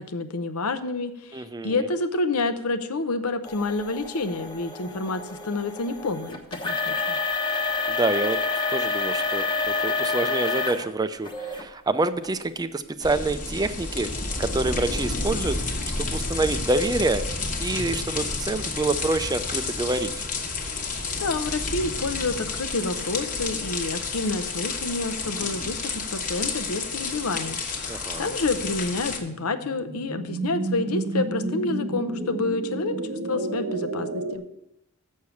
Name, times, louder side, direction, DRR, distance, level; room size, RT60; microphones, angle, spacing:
voice 1, 0.0-7.2 21.2-32.9 33.3-34.4, left 3 dB, 80° left, 10 dB, 0.7 m, -29 dB
voice 2, 1.3-1.9 7.9-8.4 8.7-17.2 17.6-20.1 27.9-28.3, right 2 dB, 15° right, 11 dB, 0.4 m, -27 dB
sound 1, 3.5-10.9 11.3-11.6 12.2-12.3 13.0-13.1, left 3 dB, 20° left, 1.0 m, -28 dB
sound 2, 13.0-29.2, left 3 dB, 35° left, 1.2 m, -30 dB
sound 3, 28.9-34.4, right 2 dB, 75° right, 1.2 m, -31 dB
7.2 x 6.5 x 7.0 m, 0.84 s
head